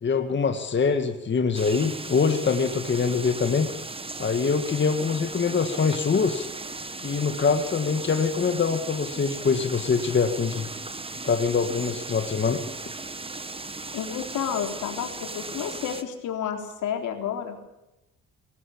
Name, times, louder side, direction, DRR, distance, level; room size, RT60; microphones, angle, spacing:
voice 1, 0.0-3.7 4.2-6.5 7.0-10.7 11.2-12.6, left 5 dB, 40° left, 6 dB, 1.9 m, -24 dB
sound 1, 1.5-16.0, right 3 dB, 20° right, 1.5 m, -37 dB
voice 2, 13.9-17.6, left 8 dB, 80° left, 4 dB, 3.7 m, -30 dB
19.5 x 18.5 x 8.7 m, 0.93 s
cardioid pair, 90°, 30 cm